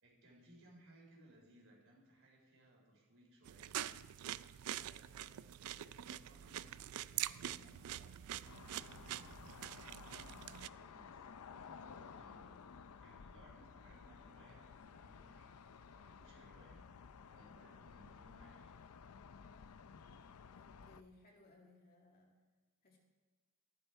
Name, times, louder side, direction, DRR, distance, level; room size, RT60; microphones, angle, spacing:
voice 1, 0.0-3.8 4.7-9.3 9.9-12.6 13.0-16.9 17.3-18.8, right 1 dB, 60° right, -1 dB, 3.9 m, -64 dB
sound 1, 3.4-10.7, right 12 dB, 80° right, 0.4 m, -45 dB
Bowed string instrument, 7.4-12.6, right 4 dB, 20° right, 1.1 m, -76 dB
sound 2, 8.4-21.0, left 6 dB, 80° left, 0.5 m, -55 dB
voice 2, 20.5-22.3 22.8-23.0, left 2 dB, 45° left, -1 dB, 2.4 m, -64 dB
13.5 x 11.0 x 4.5 m, 1.3 s
head